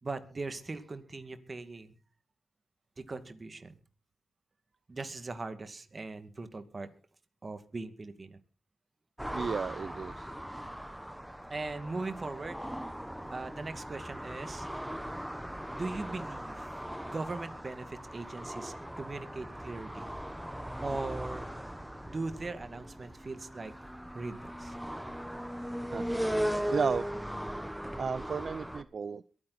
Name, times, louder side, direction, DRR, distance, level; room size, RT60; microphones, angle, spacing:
voice 1, 0.0-2.0 3.0-3.8 4.9-6.9 7.4-8.4 11.5-12.6 13.3-14.7 15.7-16.8 17.0-20.1 20.8-21.5 22.1-24.7, right 3 dB, 40° right, 10 dB, 2.3 m, -40 dB
sound 1, 9.2-28.8, equal, 5° right, 1.2 m, -38 dB
voice 2, 9.3-10.3 25.9-26.1 26.7-27.1 28.0-29.2, right 5 dB, 65° right, 15 dB, 0.6 m, -33 dB
22.5 x 9.6 x 4.3 m, 0.38 s
cardioid pair, 65°, 0 cm